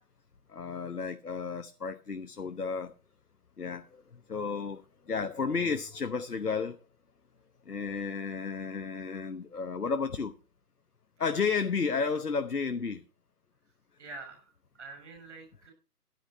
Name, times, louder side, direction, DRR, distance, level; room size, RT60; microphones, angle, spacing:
voice 1, 0.5-2.9 3.6-4.0 4.3-6.8 7.7-10.3 11.2-13.0, left 5 dB, 70° left, 1.1 m, -32 dB
voice 2, 14.0-15.7, right 3 dB, 45° right, 5.9 m, -46 dB
14.5 x 10.5 x 4.1 m
figure-of-eight pair, 145°, 48 cm